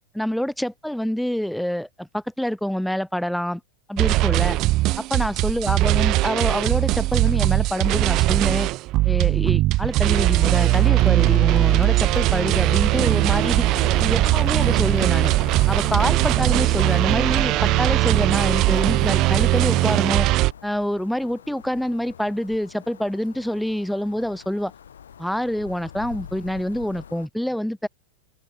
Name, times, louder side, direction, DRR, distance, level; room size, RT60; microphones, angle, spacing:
voice 1, 0.1-3.6 3.9-4.6 5.0-8.7 9.0-13.7 14.0-15.3 15.7-20.3 20.6-24.7 25.2-27.9, equal, ahead, 3.9 m, -26 dB
sound 1, 4.0-20.5, right 18 dB, 40° right, 0.5 m, -20 dB
sound 2, 10.5-20.0, left 14 dB, 35° left, 4.4 m, -39 dB
sound 3, 14.0-27.3, left 8 dB, 65° left, 4.5 m, -45 dB
figure-of-eight pair, 90°, 0 cm